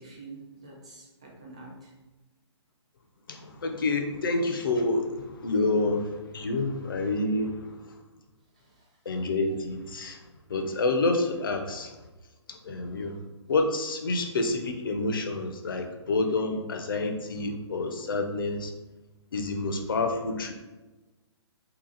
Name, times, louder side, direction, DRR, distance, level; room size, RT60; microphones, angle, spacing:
voice 1, 0.0-1.9 8.6-8.9, right 3 dB, 15° right, -3 dB, 0.3 m, -47 dB
voice 2, 3.3-8.0 9.1-10.2 10.5-11.9 12.5-13.2 13.5-18.7 19.3-20.5, left 2 dB, 45° left, 5 dB, 0.5 m, -28 dB
2.8 x 2.7 x 3.8 m, 1.1 s
hypercardioid pair, 175°, 15 cm